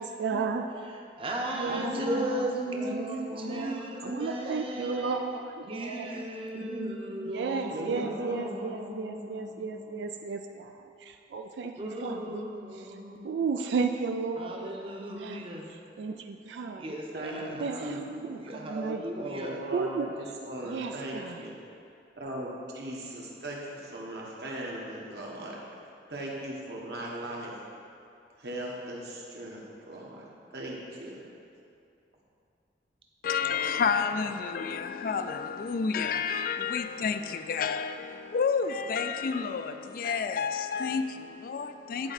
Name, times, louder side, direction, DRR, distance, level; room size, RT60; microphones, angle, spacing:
voice 1, 0.0-0.6 1.6-1.9 2.2-2.4 2.9-6.2 7.3-12.4 13.2-15.4 16.0-16.8 17.6-17.8 18.2-19.0 19.7-20.2 20.7-21.4, right 5 dB, 85° right, 5 dB, 0.3 m, -34 dB
voice 2, 0.8-5.2 5.7-8.5 11.8-13.2 14.4-15.7 16.8-19.6 33.4-33.9, right 1 dB, 30° right, 0 dB, 0.8 m, -37 dB
voice 3, 1.7-4.4 4.8-5.1 6.5-7.3 7.7-10.2 17.1-18.3 19.1-21.5 22.2-25.6 26.1-27.6 28.4-30.2 30.5-31.2, right 1 dB, 65° right, -3 dB, 1.3 m, -38 dB
voice 4, 33.2-42.1, left 5 dB, 55° left, 9 dB, 0.3 m, -30 dB
10.5 x 4.4 x 4.0 m, 2.5 s
head